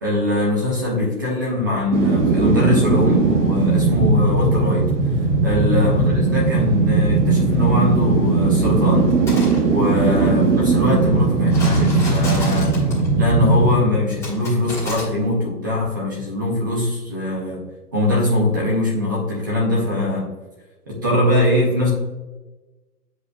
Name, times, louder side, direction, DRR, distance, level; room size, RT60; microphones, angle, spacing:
voice 1, 0.0-4.9 5.4-9.1 9.6-12.8 13.1-20.3 20.9-21.9, left 1 dB, 15° right, -4 dB, 0.6 m, -21 dB
sound 1, 1.9-15.0 15.3-15.4, right 3 dB, 45° right, 1.2 m, -18 dB
sound 2, 9.1-9.6 11.5-13.1 14.2-15.0, left 2 dB, 5° left, 1.4 m, -31 dB
8.8 x 5.1 x 2.3 m, 1.2 s
hypercardioid pair, 150°, 49 cm